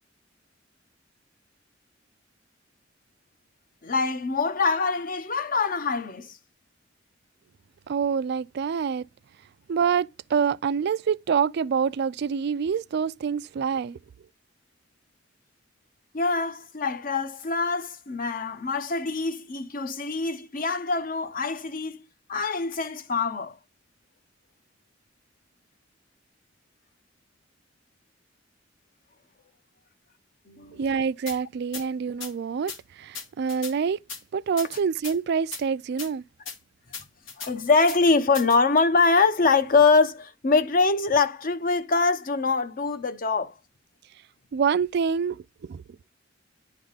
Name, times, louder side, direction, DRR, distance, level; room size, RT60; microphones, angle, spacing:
voice 1, 3.8-6.4 16.1-22.0 22.3-23.6 30.5-30.8 31.8-31.9 37.4-43.5, left 4 dB, 45° left, 0.8 m, -24 dB
voice 2, 7.9-9.1 9.7-14.0 30.7-34.0 34.3-36.2 44.5-45.8, right 6 dB, 60° right, 0.3 m, -26 dB
sound 1, 31.3-31.4 31.7-31.8 32.2-32.3 32.7-32.8 33.1-33.7 34.1-34.2 34.6-35.2 35.5-35.6 36.0-36.1 36.5-36.6 36.9-37.5 37.9-38.0 38.3-38.6, left 5 dB, 85° left, 1.7 m, -37 dB
10.5 x 3.6 x 4.0 m
head